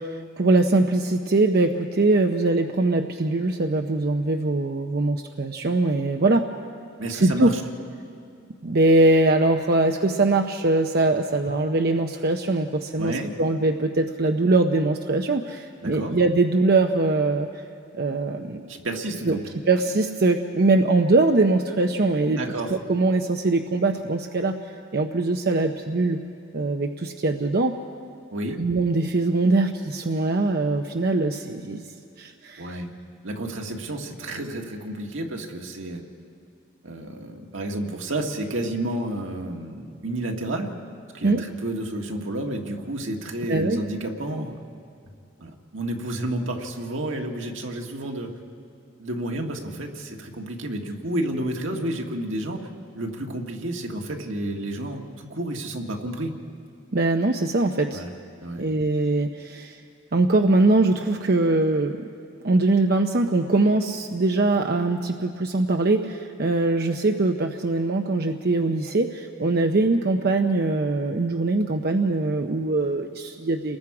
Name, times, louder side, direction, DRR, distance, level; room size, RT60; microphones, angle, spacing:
voice 1, 0.0-6.5 7.1-7.5 8.6-17.6 17.9-18.6 19.3-19.4 19.7-22.4 22.7-24.6 24.9-26.2 26.5-27.8 28.6-31.9 32.2-32.7 41.2-41.4 43.5-43.8 56.9-58.0 58.6-59.8 60.1-61.9 62.4-73.8, right 2 dB, 50° right, 4 dB, 0.7 m, -22 dB
voice 2, 7.0-7.6 13.0-13.4 15.8-16.1 18.7-19.4 22.4-22.8 28.3-28.6 32.6-32.9 33.2-36.0 36.8-40.8 41.1-44.6 45.4-48.4 49.0-52.7 52.9-56.4 57.9-58.1 58.4-58.6, right 1 dB, 75° right, 2 dB, 1.7 m, -30 dB
29.5 x 20.5 x 4.8 m, 2.4 s
head